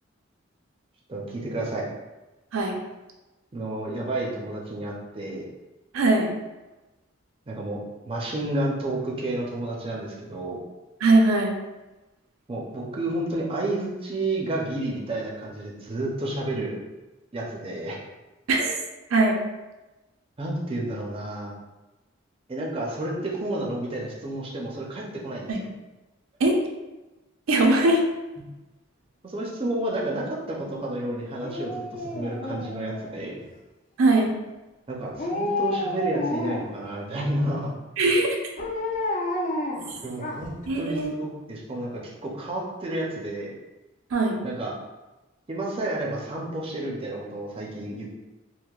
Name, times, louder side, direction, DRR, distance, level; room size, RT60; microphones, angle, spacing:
voice 1, 1.1-1.9 3.5-5.5 7.5-10.6 12.5-16.8 17.3-18.0 20.4-21.5 22.5-25.6 28.4-28.5 29.2-33.4 34.9-37.7 40.0-43.6 44.4-44.7 45.5-48.1, right 1 dB, 25° right, -3 dB, 0.4 m, -31 dB
voice 2, 5.9-6.3 11.0-11.5 18.5-18.7 19.1-19.4 25.5-25.6 26.4-26.6 27.5-28.0 34.0-34.3 38.0-38.4 39.9-40.0 40.7-41.1 44.1-44.4, right 2 dB, 85° right, 1 dB, 0.5 m, -20 dB
Dog, 31.4-33.4 35.1-36.8 38.6-40.7 41.0-41.1, left 2 dB, 40° left, 0.4 m, -30 dB
4.5 x 2.0 x 2.3 m, 1.1 s
head